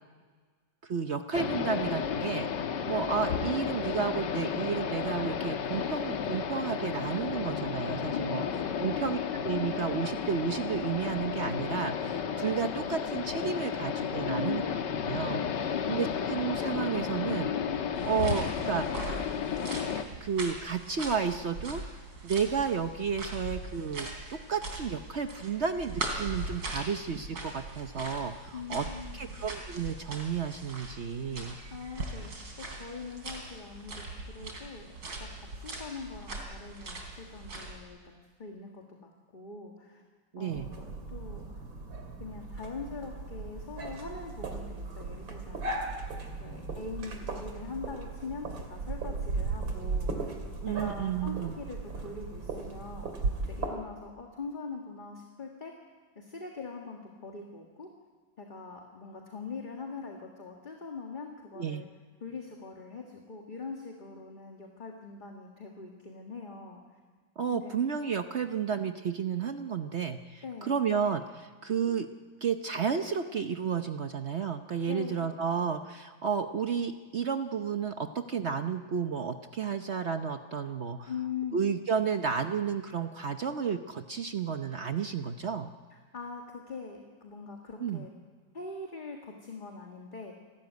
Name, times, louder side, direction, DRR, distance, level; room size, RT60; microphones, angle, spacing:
voice 1, 0.8-2.5 2.9-8.4 8.8-14.6 15.1-18.9 20.2-21.8 22.2-28.8 29.1-31.6 40.3-40.7 50.6-51.5 61.6-61.8 67.4-72.1 72.4-81.1 81.5-85.7 87.8-88.1, right 6 dB, 55° right, 8 dB, 0.7 m, -32 dB
sound 1, 1.3-20.0, left 7 dB, 70° left, 1.7 m, -33 dB
voice 2, 8.1-8.9 14.3-14.8 15.7-15.9 28.5-29.4 31.7-34.9 35.2-38.1 38.4-40.0 40.4-41.4 42.2-45.7 46.4-50.3 50.7-53.1 53.5-55.7 56.2-57.9 58.4-61.9 62.2-66.8 67.5-67.8 70.4-70.8 74.9-75.7 81.1-81.6 85.9-88.1 88.5-90.3, left 4 dB, 25° left, 1 dB, 1.8 m, -42 dB
sound 2, 17.9-37.8, right 2 dB, 70° right, 4.1 m, -41 dB
sound 3, 40.5-53.7, right 3 dB, 85° right, 3.3 m, -37 dB
29.0 x 13.0 x 9.4 m, 1.5 s
omnidirectional pair, 2.1 m